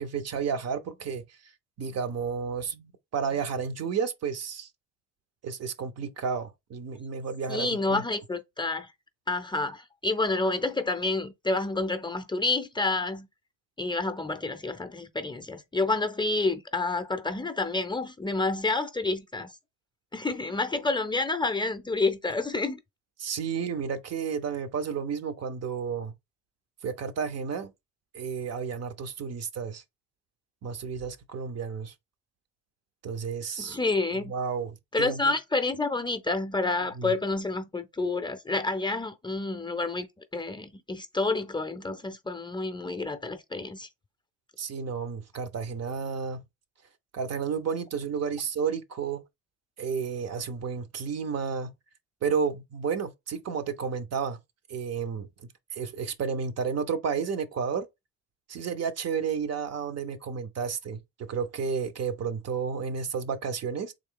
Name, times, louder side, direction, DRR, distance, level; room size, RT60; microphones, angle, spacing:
voice 1, 0.0-1.4 1.8-4.7 5.4-8.0 23.2-26.1 26.8-27.7 28.1-29.8 30.6-31.9 33.0-33.8 34.3-35.2 37.0-37.1 44.6-46.4 47.1-49.2 49.8-51.7 52.2-54.4 54.7-55.3 55.7-57.9 58.5-61.0 61.3-63.9, right 6 dB, 55° right, 0.7 m, -31 dB
voice 2, 7.5-8.9 9.3-13.3 13.8-19.5 20.1-22.8 33.6-34.3 34.9-40.1 40.3-43.9, left 3 dB, 15° left, 0.5 m, -29 dB
3.7 x 2.7 x 3.7 m
cardioid pair, 90°, 30 cm